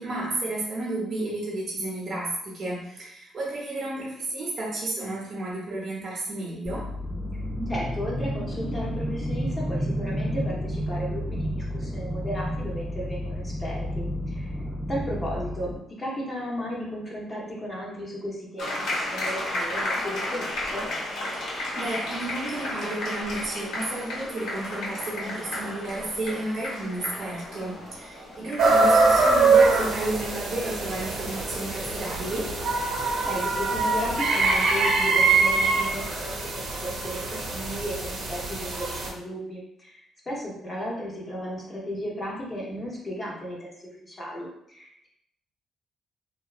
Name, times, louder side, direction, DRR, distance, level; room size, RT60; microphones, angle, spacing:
voice 1, 0.0-6.9 21.3-32.5, right 2 dB, 55° right, -3 dB, 0.7 m, -32 dB
sound 1, 6.6-15.8, equal, 10° right, 0.4 m, -31 dB
voice 2, 7.7-14.5 14.9-20.8 33.2-37.2 37.5-43.7 44.0-45.1, equal, 30° left, -4 dB, 0.7 m, -35 dB
sound 2, 18.6-33.5, left 1 dB, 80° left, 0.9 m, -34 dB
sound 3, 28.6-39.1, right 3 dB, 90° right, 0.7 m, -23 dB
2.7 x 2.3 x 2.3 m, 0.76 s
cardioid pair, 90°, 0 cm